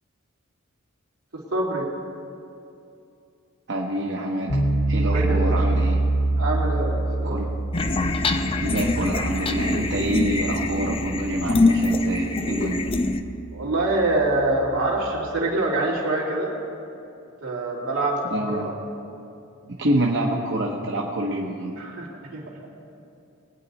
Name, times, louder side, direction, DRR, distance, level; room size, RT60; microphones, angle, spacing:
voice 1, 1.3-1.9 5.0-5.6 6.4-7.4 13.5-16.5 17.4-18.7 19.8-19.9 21.8-22.6, right 2 dB, 80° right, -4 dB, 2.9 m, -25 dB
voice 2, 3.7-6.0 7.2-7.5 8.4-12.8 18.3-18.8 19.7-21.7, right 1 dB, 55° right, -2 dB, 1.0 m, -27 dB
sound 1, 4.5-15.4, right 2 dB, 65° left, 1.1 m, -27 dB
sound 2, 7.7-13.2, left 2 dB, 25° left, 0.5 m, -24 dB
21.5 x 9.3 x 4.1 m, 2.6 s
head